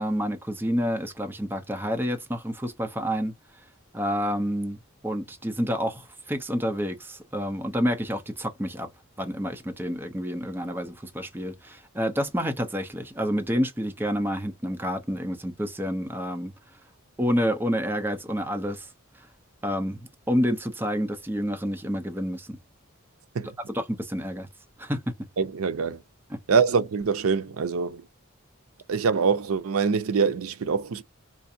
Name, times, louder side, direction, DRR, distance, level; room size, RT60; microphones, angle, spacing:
voice 1, 0.0-3.3 3.9-4.8 5.0-8.9 9.2-16.5 17.2-18.9 19.6-22.6 23.7-24.5 24.8-25.1 26.3-26.4, equal, 10° right, 0.6 m, -28 dB
voice 2, 25.4-26.0 26.5-28.1 28.9-31.0, right 5 dB, 75° right, 0.5 m, -24 dB
4.5 x 2.5 x 2.7 m
head